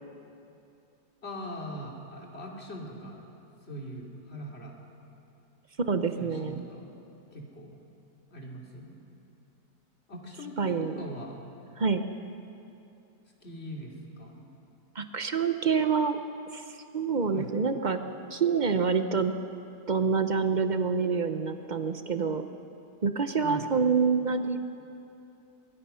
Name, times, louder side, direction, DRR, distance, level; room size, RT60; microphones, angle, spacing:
voice 1, 1.2-3.2 3.7-4.8 6.2-6.9 7.3-7.7 8.3-9.0 10.1-11.4 13.4-14.4 17.3-17.5 23.4-23.7, equal, 35° left, -1 dB, 3.0 m, -41 dB
voice 2, 5.9-6.7 10.6-10.9 11.8-12.0 14.9-16.2 16.5-18.0 18.3-19.3 19.9-22.5 23.0-24.6, right 5 dB, 45° right, 8 dB, 0.6 m, -27 dB
23.0 x 22.0 x 5.7 m, 2.7 s
omnidirectional pair, 1.9 m